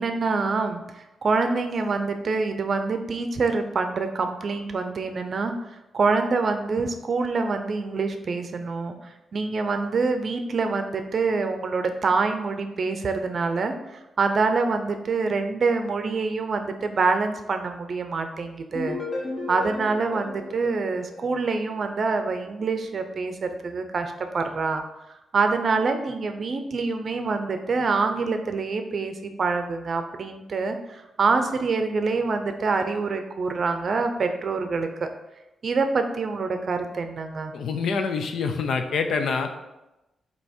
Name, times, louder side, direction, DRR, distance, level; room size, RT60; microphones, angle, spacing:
voice 1, 0.0-19.0 19.5-24.8 25.3-35.1 35.6-37.5, right 4 dB, 45° right, 6 dB, 0.6 m, -26 dB
sound 1, 18.7-21.7, left 3 dB, 35° left, 1.2 m, -34 dB
voice 2, 37.5-39.5, left 5 dB, 65° left, 6 dB, 0.6 m, -26 dB
8.0 x 2.9 x 4.3 m, 0.97 s
wide cardioid pair, 160°, 0 cm